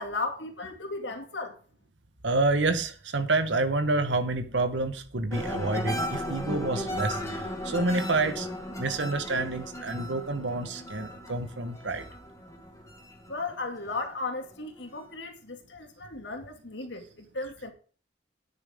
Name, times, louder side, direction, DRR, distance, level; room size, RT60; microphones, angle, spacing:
voice 1, 0.0-1.6 13.3-17.7, left 3 dB, 80° left, 2.4 m, -35 dB
voice 2, 2.2-8.5 8.8-12.0, right 2 dB, 90° right, 1.3 m, -28 dB
sound 1, 5.3-14.1 14.5-15.0, equal, 15° left, 2.0 m, -36 dB
12.5 x 9.7 x 3.7 m
head